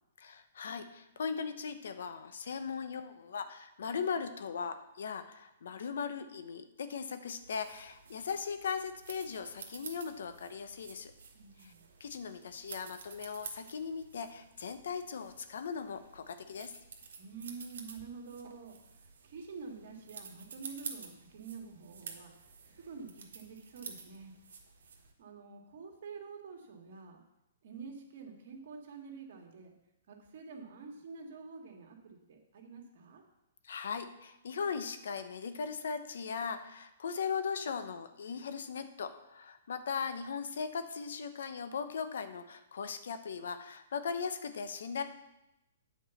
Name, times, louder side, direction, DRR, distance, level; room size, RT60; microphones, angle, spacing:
voice 1, 0.2-11.1 11.6-11.7 12.0-16.7 33.6-45.0, left 6 dB, 75° left, 9 dB, 0.8 m, -38 dB
sound 1, 7.4-25.1, right 5 dB, 75° right, 1.5 m, -51 dB
voice 2, 11.3-11.8 17.2-24.3 25.2-27.2 27.6-29.7 30.1-33.2, right 5 dB, 60° right, 1 dB, 2.0 m, -48 dB
8.3 x 4.7 x 7.1 m, 0.91 s
hypercardioid pair, 145°, 0 cm